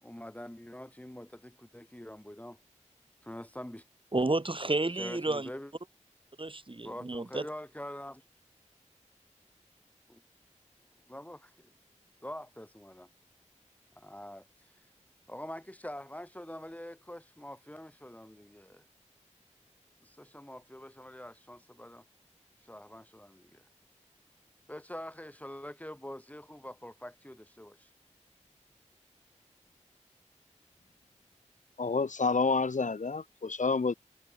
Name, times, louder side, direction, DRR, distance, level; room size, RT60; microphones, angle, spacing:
voice 1, 0.0-2.6 3.2-3.8 5.0-5.7 6.8-8.2 10.1-10.2 11.1-11.7 12.2-13.1 14.0-14.4 15.3-18.9 20.0-22.0 22.7-23.6 24.7-27.9, left 1 dB, 10° left, 2.2 m, -45 dB
voice 2, 4.1-5.5 6.4-7.4, right 2 dB, 45° right, 2.7 m, -31 dB
voice 3, 31.8-33.9, left 4 dB, 90° left, 1.6 m, -29 dB
wide cardioid pair, 50°, 13 cm